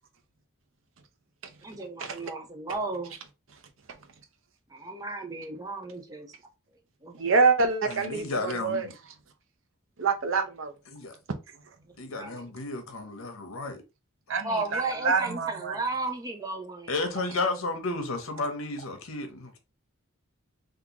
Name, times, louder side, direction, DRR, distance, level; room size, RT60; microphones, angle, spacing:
voice 1, 1.6-3.1 4.7-6.3 7.0-7.2 12.1-12.5 14.4-17.0, right 3 dB, 15° right, 0.5 m, -34 dB
voice 2, 7.1-8.9 10.0-10.7 14.3-15.8, right 4 dB, 70° right, 0.6 m, -26 dB
voice 3, 7.9-8.9 10.9-11.1 12.0-13.8 16.9-19.6, left 3 dB, 85° left, 0.8 m, -32 dB
3.6 x 2.4 x 2.8 m
head